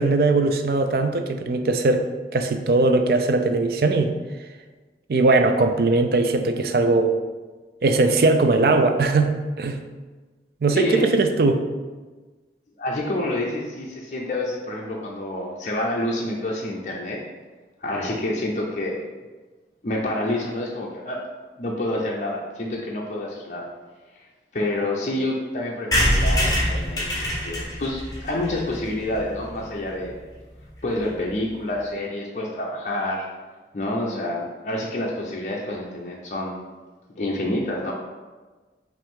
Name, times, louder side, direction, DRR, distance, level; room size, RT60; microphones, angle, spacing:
voice 1, 0.0-2.1 2.3-4.1 5.1-7.1 7.8-9.8 10.6-11.6, right 3 dB, 55° right, 6 dB, 0.4 m, -20 dB
voice 2, 10.7-11.1 12.8-17.2 17.8-19.0 19.8-21.2 21.6-23.7 24.2-24.3 24.5-30.1 30.8-33.3 33.7-36.6 37.2-37.9, left 1 dB, 40° left, -3 dB, 0.5 m, -28 dB
sound 1, 25.9-29.6 30.0-30.1 30.3-30.4 30.6-30.7 30.9-31.2, equal, 20° left, 1.0 m, -24 dB
5.6 x 2.6 x 3.6 m, 1.3 s
head